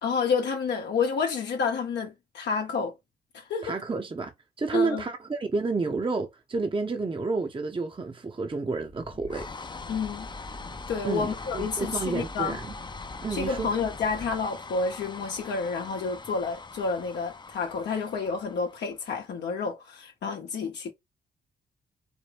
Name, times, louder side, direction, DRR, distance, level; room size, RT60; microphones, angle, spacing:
voice 1, 0.0-2.9 3.3-3.8 4.7-5.0 9.9-10.3 10.9-12.6 13.3-20.9, left 5 dB, 70° left, 0.8 m, -29 dB
voice 2, 3.6-4.3 4.6-9.5 11.0-12.7 13.2-13.7, right 4 dB, 30° right, 0.8 m, -30 dB
sound 1, 8.8-19.3, left 3 dB, 25° left, 0.5 m, -41 dB
4.4 x 2.2 x 3.3 m
supercardioid pair, 55°, 18 cm